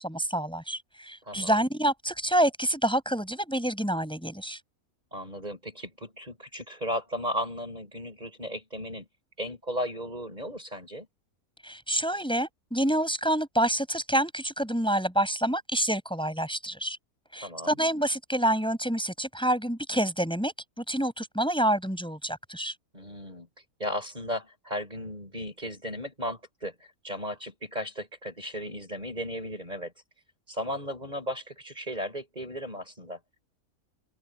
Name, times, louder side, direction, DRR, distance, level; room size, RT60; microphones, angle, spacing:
voice 1, 0.0-4.6 11.6-17.0 17.3-22.7, right 1 dB, 5° left, 6.1 m, -27 dB
voice 2, 1.3-1.6 5.1-9.1 9.4-11.1 17.4-17.8 22.9-23.5 23.8-29.9 30.5-33.2, equal, 25° right, 6.0 m, -35 dB
omnidirectional pair, 1.6 m